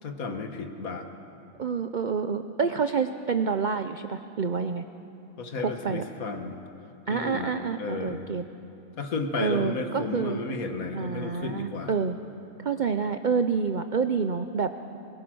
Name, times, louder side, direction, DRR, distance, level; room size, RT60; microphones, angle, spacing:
voice 1, 0.0-1.1 5.4-6.6 7.1-8.2 9.0-12.0, left 3 dB, 65° left, 5 dB, 1.8 m, -33 dB
voice 2, 1.6-4.8 5.6-6.0 7.1-8.4 9.4-10.4 10.9-12.2 12.6-14.7, right 5 dB, 65° right, 9 dB, 0.4 m, -28 dB
21.5 x 21.0 x 6.2 m, 2.8 s
omnidirectional pair, 1.6 m